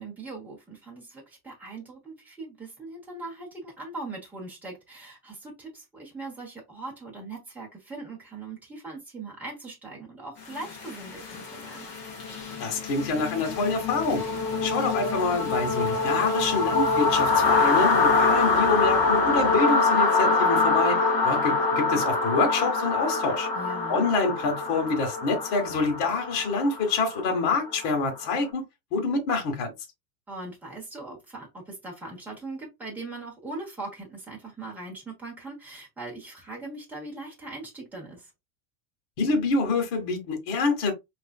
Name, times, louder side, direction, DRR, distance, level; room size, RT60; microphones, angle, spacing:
voice 1, 0.0-11.9 23.5-24.1 30.3-38.3, right 2 dB, 5° right, 0.9 m, -40 dB
sound 1, 10.5-28.3, left 3 dB, 20° left, 0.9 m, -25 dB
voice 2, 12.6-14.2 14.6-23.5 23.9-28.6 28.9-29.7 39.2-40.9, left 3 dB, 40° left, 1.2 m, -26 dB
4.6 x 2.5 x 2.3 m
supercardioid pair, 165°, 50 cm